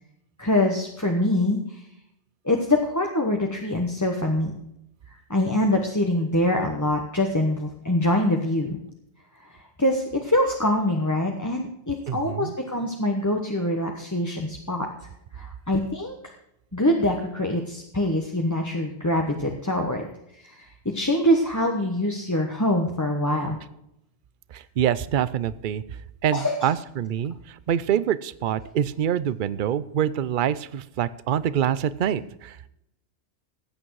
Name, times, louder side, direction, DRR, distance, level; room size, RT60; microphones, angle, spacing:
voice 1, 0.4-1.9 2.4-4.5 5.3-8.8 9.4-14.9 15.3-16.3 16.7-20.0 20.3-23.6 26.3-26.8 28.6-28.7, left 1 dB, 15° left, 1 dB, 1.1 m, -24 dB
voice 2, 12.1-12.5 24.5-25.8 26.2-32.7, right 9 dB, 55° right, 17 dB, 0.7 m, -25 dB
15.0 x 8.8 x 4.7 m, 0.80 s
omnidirectional pair, 1.2 m